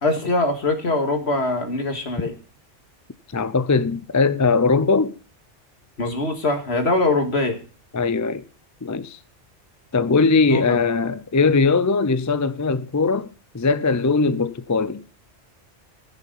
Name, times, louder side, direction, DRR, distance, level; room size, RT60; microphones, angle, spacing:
voice 1, 0.0-2.3 6.0-7.6 10.5-10.8, left 2 dB, 60° left, 2.3 m, -22 dB
voice 2, 3.3-5.2 7.9-8.4 8.8-9.2 9.9-13.3 13.5-15.0, left 4 dB, 25° left, 0.4 m, -20 dB
15.0 x 6.9 x 5.6 m
omnidirectional pair, 1.2 m